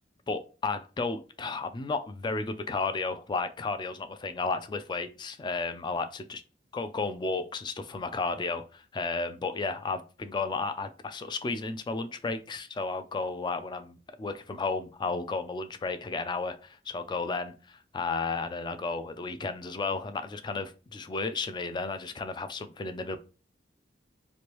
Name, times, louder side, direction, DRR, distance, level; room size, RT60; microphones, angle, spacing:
voice 1, 0.3-6.4 6.7-23.2, left 3 dB, 25° left, 0.3 m, -33 dB
3.1 x 2.5 x 3.0 m
head